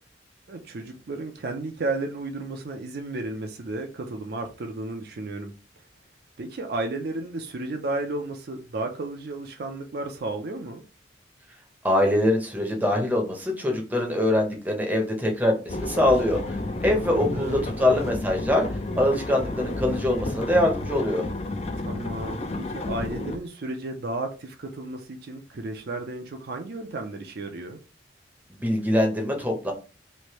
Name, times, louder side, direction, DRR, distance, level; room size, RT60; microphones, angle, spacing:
voice 1, 0.5-5.5 6.4-10.8 16.9-17.8 21.8-27.8, right 2 dB, 55° right, 0.5 m, -33 dB
voice 2, 11.8-16.4 16.8-21.3 28.6-29.7, left 1 dB, 10° right, 0.7 m, -23 dB
sound 1, 15.7-23.4, left 2 dB, 35° left, 0.4 m, -31 dB
3.2 x 2.6 x 2.9 m
head